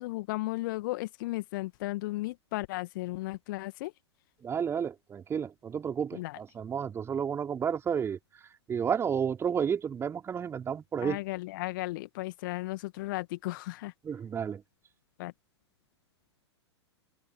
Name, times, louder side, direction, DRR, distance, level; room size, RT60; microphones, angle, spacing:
voice 1, 0.0-3.9 6.1-6.4 11.0-13.9 15.2-15.3, left 19 dB, 45° left, 2.2 m, -35 dB
voice 2, 4.4-8.2 8.7-11.2 14.0-14.6, right 7 dB, 15° right, 4.9 m, -31 dB
open air
figure-of-eight pair, 105°, 15 cm